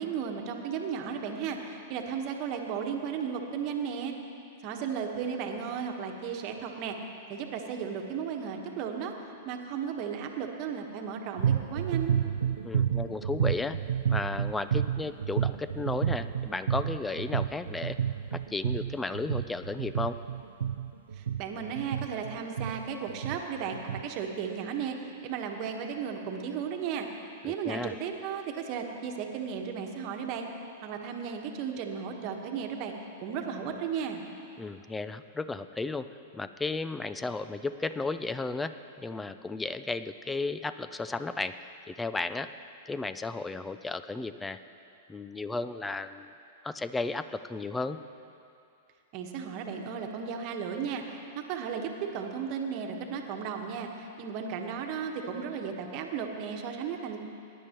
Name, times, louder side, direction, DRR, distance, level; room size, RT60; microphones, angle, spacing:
voice 1, 0.0-4.1 4.6-7.0 7.3-9.1 9.4-12.1 21.1-27.1 27.4-30.5 30.8-32.9 33.2-34.2 49.1-57.2, right 7 dB, 45° right, 3 dB, 1.3 m, -35 dB
sound 1, 11.4-24.0, right 9 dB, 80° right, 0.4 m, -30 dB
voice 2, 12.6-13.8 14.1-18.0 18.3-20.2 27.4-27.9 34.6-36.1 36.3-42.5 42.9-44.6 45.1-46.3 46.6-48.0, left 3 dB, 10° left, 12 dB, 0.4 m, -34 dB
19.0 x 10.0 x 3.0 m, 2.6 s
hypercardioid pair, 110°, 0 cm